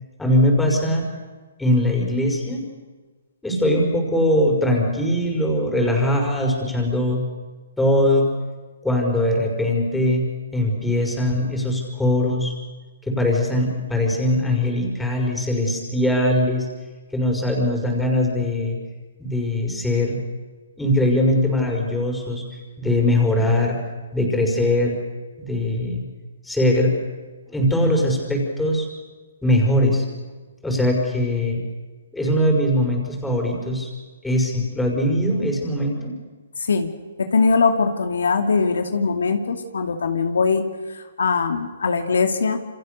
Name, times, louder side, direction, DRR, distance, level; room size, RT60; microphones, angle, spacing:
voice 1, 0.2-1.1 1.6-2.7 3.4-7.2 7.8-8.3 8.8-10.3 10.5-12.5 13.1-16.7 17.1-18.8 19.2-20.2 20.8-22.4 22.8-23.8 24.1-25.0 25.4-26.0 26.4-27.0 27.5-28.9 29.4-30.0 30.6-31.6 32.1-33.9 34.2-36.1, left 1 dB, 5° left, 0 dB, 5.3 m, -21 dB
voice 2, 37.2-40.6 40.9-42.6, left 4 dB, 85° left, 6 dB, 2.6 m, -21 dB
28.0 x 25.5 x 6.7 m, 1.4 s
hypercardioid pair, 155°, 0 cm